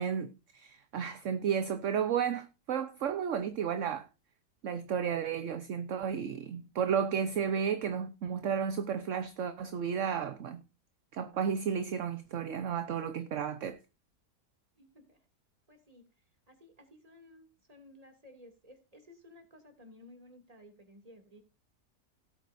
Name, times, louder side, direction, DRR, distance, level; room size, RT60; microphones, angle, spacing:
voice 1, 0.0-4.1 4.6-10.6 11.1-13.8, right 7 dB, 55° right, 1.1 m, -33 dB
voice 2, 14.8-15.2 15.7-16.1 16.5-21.4, left 1 dB, 25° right, 2.6 m, -56 dB
18.0 x 8.4 x 2.6 m
omnidirectional pair, 1.7 m